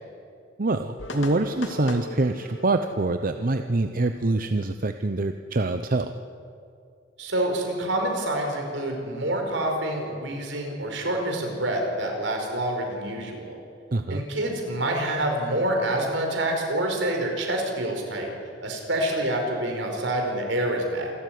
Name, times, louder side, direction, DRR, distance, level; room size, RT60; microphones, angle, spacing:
voice 1, 0.6-6.1 13.9-14.2, right 2 dB, 50° right, 8 dB, 0.8 m, -25 dB
sound 1, 1.0-4.7, left 2 dB, 80° left, 2.5 m, -39 dB
voice 2, 7.2-13.6 14.1-18.3 18.6-21.1, right 1 dB, 75° right, 2 dB, 5.0 m, -27 dB
27.0 x 13.0 x 9.5 m, 2.4 s
head